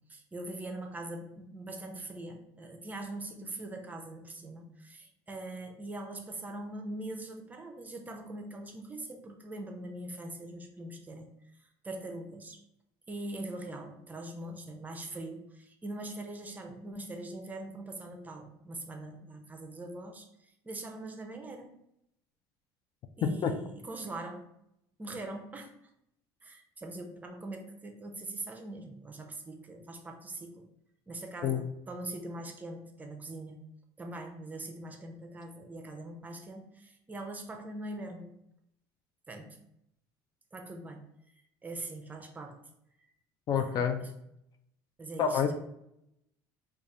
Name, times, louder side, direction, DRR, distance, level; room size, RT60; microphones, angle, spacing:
voice 1, 0.1-11.3 11.6-12.6 13.1-21.7 23.2-24.4 25.0-25.7 26.4-30.6 31.1-33.6 34.0-38.3 39.3-39.6 40.5-41.0 41.6-42.6 43.6-44.1 45.0-45.5, right 2 dB, 20° right, 4 dB, 0.6 m, -42 dB
voice 2, 43.5-44.0 45.2-45.5, left 7 dB, 45° left, 7 dB, 0.4 m, -28 dB
3.3 x 2.4 x 3.7 m, 0.80 s
supercardioid pair, 115°, 9 cm